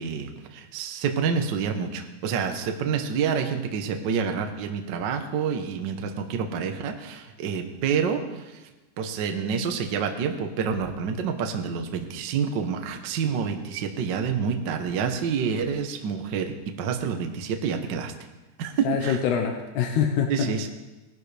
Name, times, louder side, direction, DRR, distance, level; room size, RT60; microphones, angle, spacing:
voice 1, 0.0-8.6 9.0-18.1 18.6-19.2 20.3-20.7, right 6 dB, 75° right, 6 dB, 1.0 m, -28 dB
voice 2, 18.8-20.5, left 7 dB, 80° left, 3 dB, 2.5 m, -25 dB
19.0 x 11.5 x 3.3 m, 1.1 s
omnidirectional pair, 3.5 m